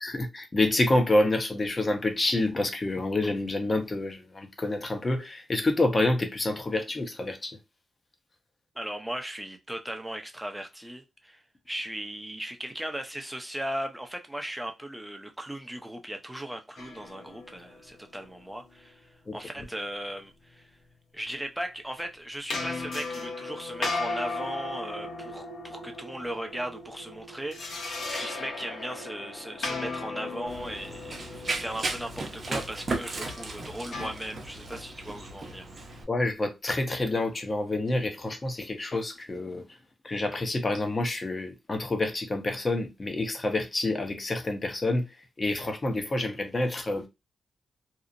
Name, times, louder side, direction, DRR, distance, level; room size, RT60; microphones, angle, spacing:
voice 1, 0.0-7.6 19.3-19.4 36.1-39.6 40.0-45.0 45.4-47.1, left 2 dB, 35° left, 0.7 m, -28 dB
voice 2, 8.7-20.7 21.1-35.7, right 1 dB, 5° right, 0.6 m, -37 dB
sound 1, 16.8-18.9 22.5-34.1, left 3 dB, 70° left, 0.8 m, -37 dB
Run, 30.5-36.0, right 3 dB, 45° right, 0.7 m, -36 dB
2.8 x 2.0 x 2.5 m
cardioid pair, 75°, 0 cm